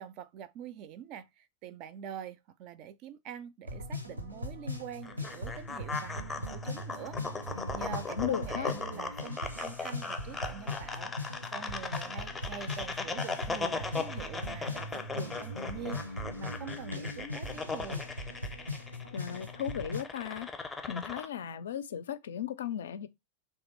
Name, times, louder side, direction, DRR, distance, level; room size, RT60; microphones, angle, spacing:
voice 1, 0.0-7.2 7.7-18.0, right 9 dB, 40° right, 0.4 m, -45 dB
sound 1, 3.6-20.0, left 1 dB, 85° right, 0.7 m, -39 dB
sound 2, 5.0-21.3, left 4 dB, 10° left, 0.6 m, -39 dB
voice 2, 8.1-8.7 19.1-20.5 20.9-23.1, left 9 dB, 60° left, 0.4 m, -36 dB
3.1 x 2.3 x 4.3 m
figure-of-eight pair, 90°, 0 cm